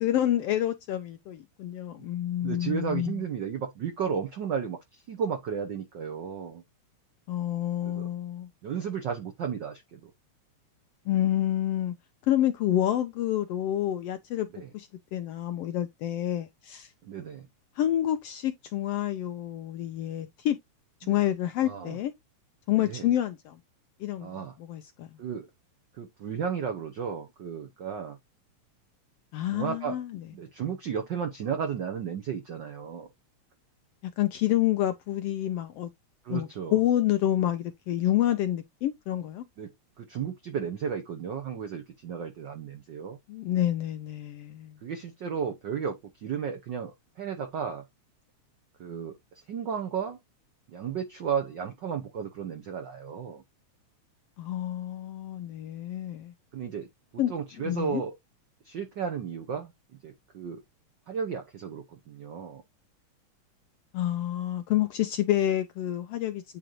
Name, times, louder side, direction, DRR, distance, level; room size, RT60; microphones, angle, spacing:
voice 1, 0.0-3.2 7.3-8.5 11.1-11.9 12.2-14.5 14.7-16.9 17.8-20.6 21.1-22.1 22.7-23.6 24.0-25.1 29.3-30.2 34.2-35.9 36.3-39.4 43.3-44.8 54.4-56.3 57.2-57.3 57.6-58.0 63.9-66.4, left 12 dB, 80° left, 1.4 m, -28 dB
voice 2, 2.4-6.6 7.8-8.1 8.6-10.1 14.5-14.7 17.0-17.5 21.0-21.2 21.6-22.0 22.8-23.1 24.2-24.5 25.2-25.5 25.9-28.2 29.5-30.0 30.3-33.1 36.2-36.8 39.6-43.2 44.8-47.8 48.8-50.2 50.7-53.4 56.5-56.9 57.3-58.1 58.6-59.7 60.0-60.6 61.1-62.6, right 7 dB, 80° right, 1.0 m, -34 dB
9.2 x 3.8 x 3.0 m
omnidirectional pair, 3.3 m